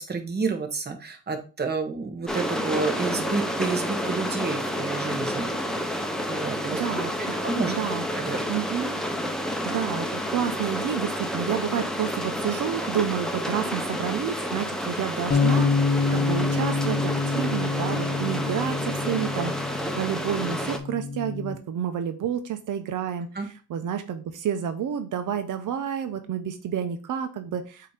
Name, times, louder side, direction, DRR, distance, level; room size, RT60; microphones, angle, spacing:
voice 1, 0.1-5.9 6.3-6.8 7.2-7.7 8.1-8.4 23.3-23.5, right 4 dB, 30° right, 4 dB, 1.3 m, -30 dB
sound 1, 2.3-20.8, equal, ahead, 0.8 m, -30 dB
voice 2, 6.8-7.1 7.7-8.1 8.5-9.0 9.6-27.9, right 9 dB, 85° right, 8 dB, 0.8 m, -30 dB
sound 2, 15.3-21.6, left 4 dB, 40° left, 0.7 m, -27 dB
7.7 x 2.9 x 5.0 m, 0.35 s
cardioid pair, 115°, 31 cm